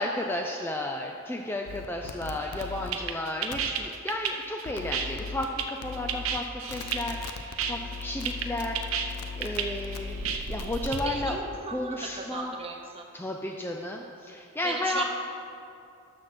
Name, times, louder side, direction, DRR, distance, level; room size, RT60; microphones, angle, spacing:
voice 1, 0.0-11.4 11.7-12.5 13.1-15.0, left 1 dB, 10° left, 2 dB, 0.3 m, -33 dB
sound 1, 1.7-2.9 3.5-3.7 4.6-5.4 5.8-6.4 6.7-11.4, left 5 dB, 90° left, 0.6 m, -38 dB
sound 2, 2.4-11.0, right 7 dB, 70° right, 0.7 m, -33 dB
voice 2, 11.0-13.1 14.6-15.0, right 4 dB, 25° right, 2 dB, 0.8 m, -37 dB
12.0 x 6.5 x 4.3 m, 2.5 s
head